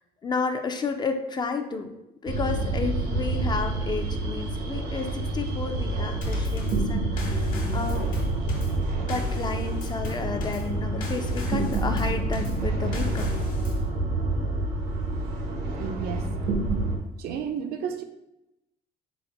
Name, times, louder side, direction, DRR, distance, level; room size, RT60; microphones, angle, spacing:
voice 1, 0.2-2.0 2.2-8.1 9.0-13.3, left 4 dB, 25° left, 6 dB, 0.4 m, -31 dB
sound 1, 2.3-17.0, right 2 dB, 85° right, 0.9 m, -28 dB
Drum kit / Snare drum / Bass drum, 6.2-13.9, left 2 dB, 50° left, 1.2 m, -38 dB
voice 2, 15.8-16.3 17.2-18.0, right 7 dB, 70° right, 7 dB, 0.5 m, -32 dB
4.1 x 2.1 x 4.5 m, 0.90 s
cardioid pair, 110°, 17 cm